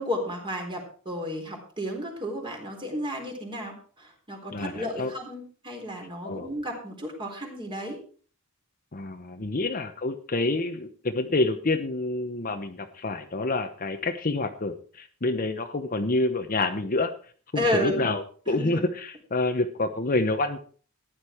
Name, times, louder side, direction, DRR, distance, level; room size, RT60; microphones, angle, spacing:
voice 1, 0.0-8.0 9.4-9.5 17.6-18.0 18.6-18.8, equal, 25° right, 2 dB, 3.9 m, -32 dB
voice 2, 4.5-5.1 6.2-6.5 8.9-17.1 17.5-20.6, left 2 dB, 40° left, 7 dB, 1.0 m, -28 dB
14.5 x 10.5 x 4.5 m, 0.42 s
head